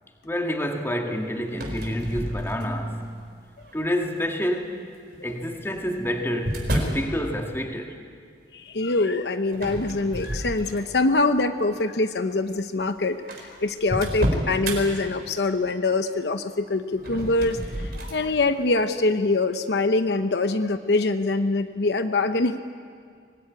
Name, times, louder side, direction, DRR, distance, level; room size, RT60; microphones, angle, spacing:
voice 1, 0.2-3.1 3.7-4.9 5.2-8.0, equal, 15° left, 2.0 m, -28 dB
sound 1, 1.5-2.9 3.6-4.0 5.1-7.1 9.5-11.1 11.6-11.8 12.6-12.7 12.8-12.9 13.3-14.8 16.9-18.2, equal, 60° right, 4.6 m, -30 dB
voice 2, 8.5-22.6, left 2 dB, 70° left, 0.8 m, -24 dB
24.5 x 19.0 x 9.7 m
head